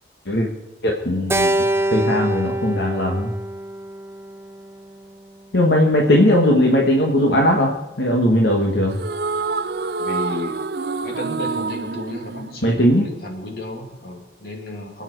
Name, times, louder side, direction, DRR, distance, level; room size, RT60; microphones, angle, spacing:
voice 1, 0.8-1.7 1.9-3.3 5.5-9.0 12.6-13.1, left 1 dB, 75° left, 0 dB, 1.8 m, -18 dB
Keyboard (musical), 1.3-5.7, right 1 dB, 15° right, 0.5 m, -25 dB
sound 1, 8.9-13.3, right 4 dB, 60° right, 0.5 m, -27 dB
voice 2, 10.0-10.6 11.0-15.0, left 1 dB, 55° left, 2 dB, 2.9 m, -33 dB
25.5 x 9.1 x 4.8 m, 0.98 s
head